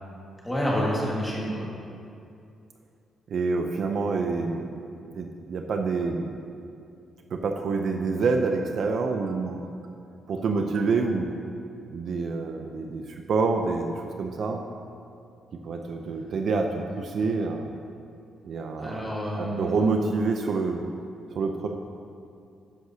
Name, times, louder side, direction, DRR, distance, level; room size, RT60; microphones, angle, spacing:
voice 1, 0.4-1.7 18.8-20.0, equal, 10° left, -5 dB, 1.8 m, -28 dB
voice 2, 3.3-4.7 5.1-6.4 7.3-9.7 10.3-11.3 11.9-14.6 15.6-17.7 18.4-19.1 19.3-20.9 21.3-21.7, right 4 dB, 50° right, 3 dB, 0.5 m, -27 dB
12.0 x 9.8 x 2.8 m, 2.5 s
cardioid pair, 160°, 0 cm